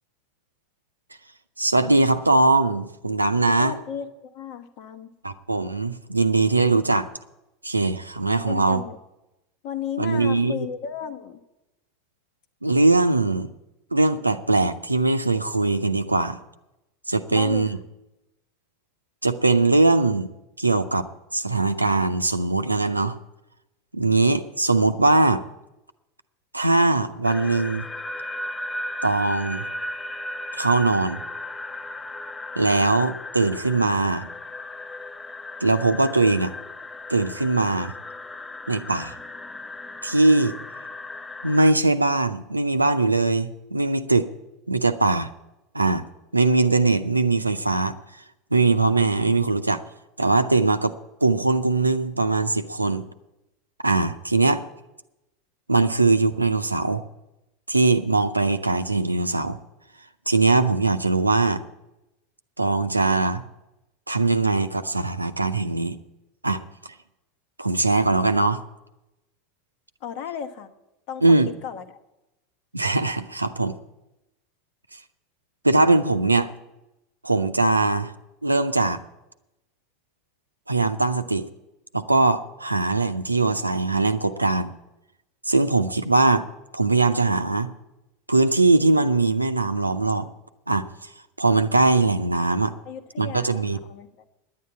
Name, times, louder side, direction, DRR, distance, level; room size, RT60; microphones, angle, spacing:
voice 1, 1.6-3.7 5.2-7.1 7.6-8.8 10.0-10.7 12.6-13.5 13.9-16.4 17.1-17.8 19.2-20.3 20.6-21.1 21.3-23.2 23.9-25.4 26.5-27.9 29.0-29.7 30.5-31.2 32.6-34.3 35.6-36.5 37.1-37.9 38.7-39.1 40.0-40.5 41.4-44.3 44.7-45.3 45.7-46.0 46.3-47.9 48.5-49.8 50.2-50.9 51.2-53.0 53.8-54.6 55.7-57.0 57.7-59.6 60.3-61.6 62.6-63.4 64.1-66.0 66.4-66.6 67.6-68.6 71.2-71.5 72.7-73.8 75.6-76.5 77.2-78.1 78.4-79.0 80.7-81.5 81.9-84.7 85.5-86.5 86.7-87.7 88.3-90.3 90.7-90.9 91.4-92.7 93.2-93.8, right 3 dB, 85° right, 10 dB, 0.6 m, -21 dB
voice 2, 3.6-5.1 8.5-9.0 9.6-11.4 17.3-17.7 70.0-70.7 71.1-72.0 92.8-94.1, left 8 dB, 55° left, 7 dB, 1.2 m, -34 dB
sound 1, 27.2-41.7, left 1 dB, 15° left, 0.7 m, -36 dB
10.0 x 9.5 x 9.6 m, 0.95 s
figure-of-eight pair, 80°, 0 cm